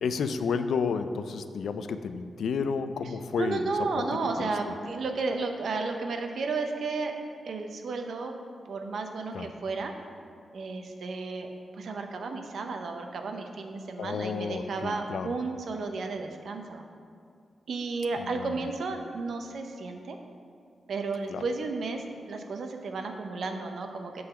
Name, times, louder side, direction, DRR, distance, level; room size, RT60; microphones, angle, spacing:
voice 1, 0.0-4.7 9.3-9.5 14.0-15.3 18.2-18.5 21.3-21.4, left 5 dB, 85° left, 10 dB, 0.4 m, -32 dB
voice 2, 3.4-7.1 7.4-8.3 8.7-9.9 10.5-16.8 17.7-20.2 20.9-24.3, right 3 dB, 70° right, 4 dB, 0.7 m, -33 dB
8.6 x 4.0 x 7.0 m, 2.3 s
wide cardioid pair, 145°, 0 cm